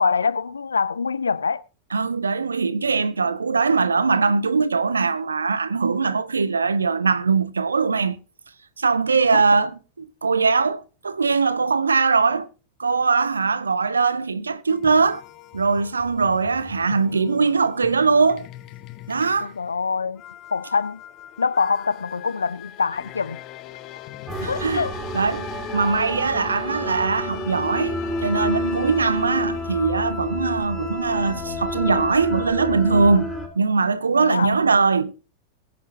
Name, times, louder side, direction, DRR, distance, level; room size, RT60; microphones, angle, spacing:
voice 1, 0.0-1.6 9.3-9.6 19.4-20.2 20.5-21.0 21.4-23.4 24.5-24.9 34.2-34.6, left 5 dB, 75° left, 0.5 m, -24 dB
voice 2, 1.9-8.2 8.8-12.5 12.8-15.2 15.5-18.5 19.1-19.5 24.4-24.8 25.1-35.1, right 4 dB, 75° right, 0.7 m, -21 dB
sound 1, 14.7-30.1, left 14 dB, 35° left, 0.9 m, -40 dB
sound 2, 24.3-33.5, left 1 dB, 10° right, 3.2 m, -30 dB
22.0 x 8.4 x 2.7 m
figure-of-eight pair, 90°, 0 cm